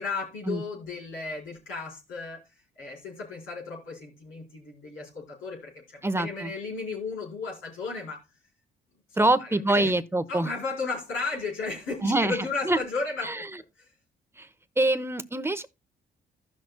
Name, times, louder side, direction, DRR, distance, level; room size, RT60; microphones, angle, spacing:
voice 1, 0.0-2.4 2.8-8.2 9.1-9.9 10.3-13.5 13.8-13.9, left 4 dB, 80° left, 4.3 m, -34 dB
voice 2, 6.0-6.5 9.2-10.5 12.0-12.4 12.6-12.8 13.2-13.5 14.4-14.5 14.8-15.7, right 2 dB, 10° right, 0.9 m, -25 dB
15.5 x 6.1 x 2.3 m
supercardioid pair, 55°, 20 cm